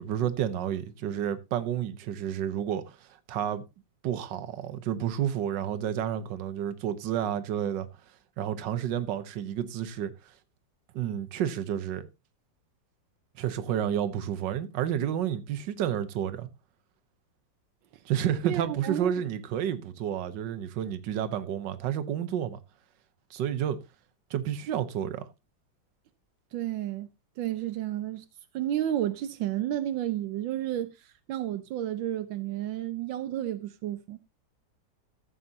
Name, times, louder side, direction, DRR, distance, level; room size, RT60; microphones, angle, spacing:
voice 1, 0.0-3.6 4.0-7.9 8.4-10.3 10.9-12.0 13.4-16.5 18.0-22.6 23.3-23.8 24.3-25.3, right 10 dB, 70° right, 1.6 m, -30 dB
voice 2, 18.4-19.1 26.5-27.1 27.4-28.2 28.5-30.9 31.3-34.2, right 12 dB, 85° right, 1.5 m, -31 dB
15.0 x 7.6 x 2.7 m
omnidirectional pair, 2.0 m